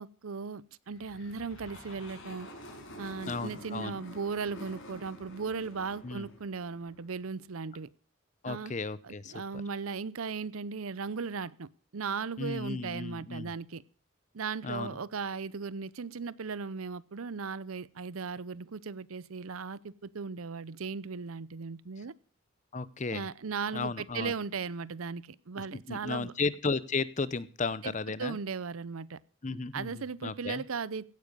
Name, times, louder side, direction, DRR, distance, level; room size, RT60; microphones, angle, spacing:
voice 1, 0.0-2.5 3.0-7.9 8.4-8.7 9.0-13.8 14.3-22.1 23.1-26.3 27.8-27.9 28.2-29.2 29.7-31.1, right 5 dB, 85° right, 0.7 m, -37 dB
sound 1, 0.9-7.3, left 1 dB, 70° left, 5.6 m, -48 dB
voice 2, 3.3-3.9 6.0-6.3 8.4-9.4 12.4-13.5 14.6-15.0 22.7-23.2 23.7-24.3 25.9-28.4 29.4-30.6, left 4 dB, 35° left, 0.7 m, -34 dB
16.0 x 9.8 x 5.3 m
head